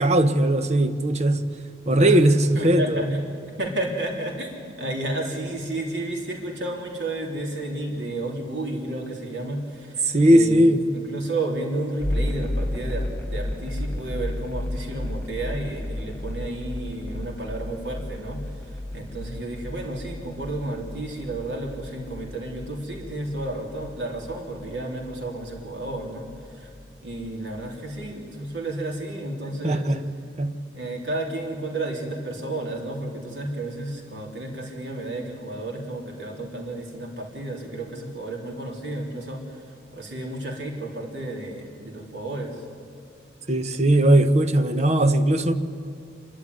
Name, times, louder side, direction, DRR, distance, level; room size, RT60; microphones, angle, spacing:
voice 1, 0.0-1.5 1.9-3.2 10.1-10.9 29.6-30.1 30.4-30.6 43.5-45.5, right 1 dB, 40° right, 0.9 m, -19 dB
voice 2, 2.5-3.1 3.3-10.6 10.9-26.7 27.0-29.9 30.7-42.6, right 2 dB, 90° right, 3.5 m, -32 dB
sound 1, 12.0-28.3, left 1 dB, 10° left, 1.0 m, -34 dB
27.0 x 12.0 x 9.6 m
head